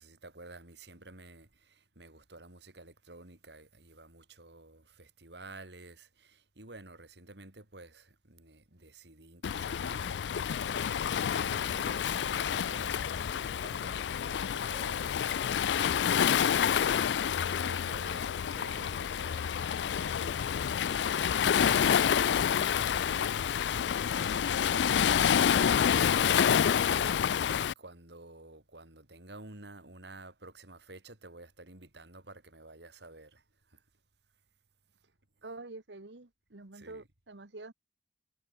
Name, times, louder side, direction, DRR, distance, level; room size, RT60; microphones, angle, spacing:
voice 1, 0.0-17.0 17.5-27.5 27.8-33.8 36.7-37.1, right 2 dB, 70° right, 4.1 m, -51 dB
Waves surf, 9.4-27.7, left 8 dB, 80° left, 0.4 m, -28 dB
voice 2, 35.4-37.7, right 2 dB, 90° right, 1.6 m, -47 dB
head